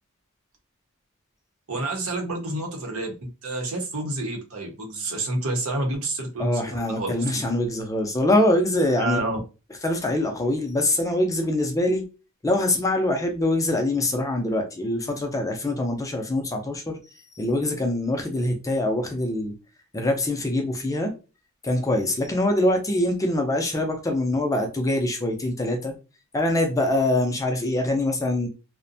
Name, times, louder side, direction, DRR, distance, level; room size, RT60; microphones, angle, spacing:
voice 1, 1.7-3.1 3.4-7.2 9.0-9.4, right 2 dB, 80° right, 0.8 m, -29 dB
voice 2, 6.4-9.2 9.8-12.0 12.4-19.5 19.9-21.1 21.6-25.9 26.3-28.5, left 1 dB, 15° left, 0.4 m, -24 dB
2.5 x 2.1 x 2.6 m
head